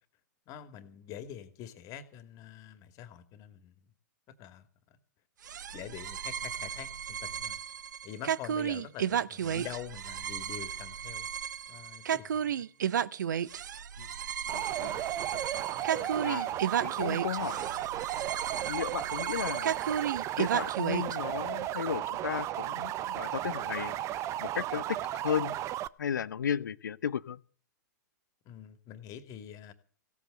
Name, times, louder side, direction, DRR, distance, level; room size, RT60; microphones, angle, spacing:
voice 1, 0.5-3.7 4.3-4.7 5.7-7.6 8.0-11.3 11.7-12.7 15.7-15.9 28.5-29.7, left 10 dB, 35° left, 2.4 m, -45 dB
sound 1, 5.4-21.2, right 9 dB, 75° right, 0.7 m, -34 dB
voice 2, 14.5-15.0 16.0-17.9 18.6-19.8 20.4-24.0 24.4-25.6 26.0-27.4, left 8 dB, 80° left, 0.9 m, -35 dB
sound 2, 14.5-25.9, right 13 dB, 30° right, 0.7 m, -34 dB
16.5 x 8.4 x 7.8 m
hypercardioid pair, 120°, 10 cm